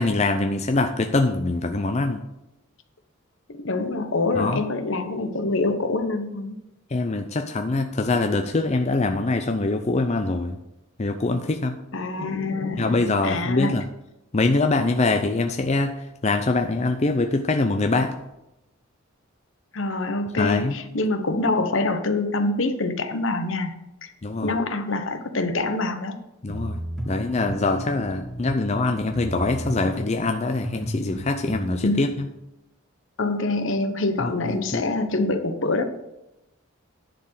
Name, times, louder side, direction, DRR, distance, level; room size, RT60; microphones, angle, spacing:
voice 1, 0.0-2.2 4.4-4.6 6.9-10.6 11.0-11.8 12.8-13.8 14.3-15.9 16.2-18.1 20.4-20.7 24.2-24.5 26.4-26.8 27.1-32.1 34.2-34.8, left 3 dB, 30° left, 5 dB, 0.5 m, -23 dB
voice 2, 3.5-6.6 11.9-13.8 19.7-23.7 24.0-24.1 24.4-26.2 31.8-32.2 33.2-35.8, left 2 dB, 65° left, 8 dB, 0.9 m, -25 dB
sound 1, 26.5-31.8, equal, ahead, 1.6 m, -33 dB
10.5 x 4.5 x 7.7 m, 0.91 s
head